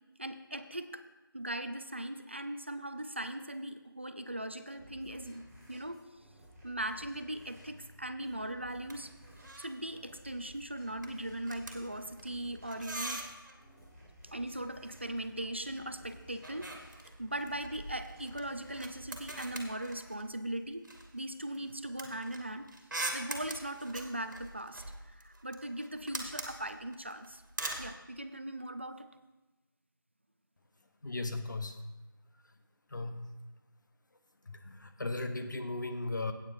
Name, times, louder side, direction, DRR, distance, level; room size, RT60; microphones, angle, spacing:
voice 1, 0.2-1.0 1.3-6.1 6.6-9.1 9.6-13.2 14.2-16.7 17.0-20.9 21.1-22.7 23.1-24.8 25.1-27.4 27.8-29.1, right 1 dB, 30° right, 10 dB, 0.4 m, -39 dB
sound 1, 4.8-19.5, equal, 5° left, 3.5 m, -56 dB
sound 2, 8.7-9.0 9.2-9.8 10.1-10.4 10.7-13.6 14.8-15.9 16.1-20.4 20.8-27.9, right 2 dB, 55° right, 1.7 m, -43 dB
voice 2, 31.0-31.8 32.9-33.2 34.4-36.3, left 2 dB, 55° left, 7 dB, 0.9 m, -36 dB
14.5 x 8.8 x 2.6 m, 1.1 s
figure-of-eight pair, 175°, 12 cm